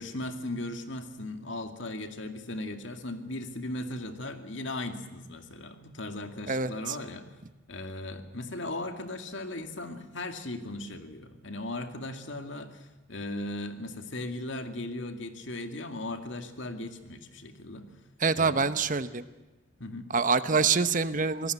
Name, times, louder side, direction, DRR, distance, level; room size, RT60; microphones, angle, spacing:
voice 1, 0.0-7.4 7.7-17.9 18.4-18.8 19.8-20.1, left 2 dB, 65° left, 7 dB, 2.3 m, -37 dB
voice 2, 6.5-7.0 18.2-19.2 20.1-21.5, right 5 dB, 40° right, 13 dB, 0.9 m, -26 dB
26.5 x 18.5 x 8.2 m, 1.1 s
head